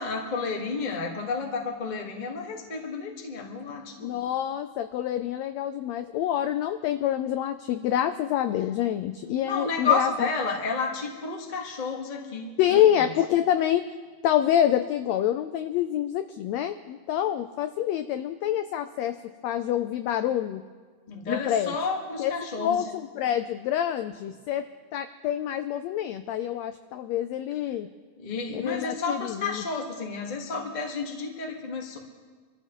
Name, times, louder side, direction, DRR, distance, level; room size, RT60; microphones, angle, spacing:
voice 1, 0.0-4.2 9.2-13.1 21.1-22.8 28.2-32.0, left 4 dB, 30° left, 1 dB, 0.7 m, -31 dB
voice 2, 4.0-10.3 12.6-13.9 14.2-19.2 19.4-20.6 21.3-21.7 22.2-24.6 24.9-27.9 28.5-29.6, left 11 dB, 85° left, 9 dB, 1.5 m, -27 dB
26.0 x 14.0 x 3.0 m, 1.5 s
omnidirectional pair, 3.5 m